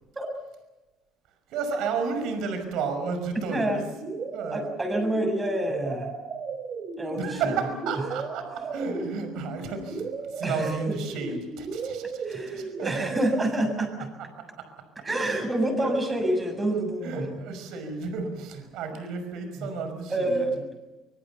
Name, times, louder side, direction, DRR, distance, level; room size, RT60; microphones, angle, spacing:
voice 1, 1.5-3.8 4.3-4.7 7.2-13.2 14.4-15.1 15.8-16.0 17.0-20.4, right 5 dB, 75° right, 8 dB, 5.6 m, -32 dB
voice 2, 3.5-3.8 4.5-6.2 7.0-7.5 10.4-11.0 12.2-14.1 15.0-17.4 19.6-19.7 20.1-20.6, right 1 dB, 15° right, 5 dB, 7.1 m, -28 dB
sound 1, 3.9-13.5, right 4 dB, 40° right, 3.7 m, -35 dB
24.0 x 24.0 x 7.0 m, 1.1 s
cardioid pair, 130°, 0 cm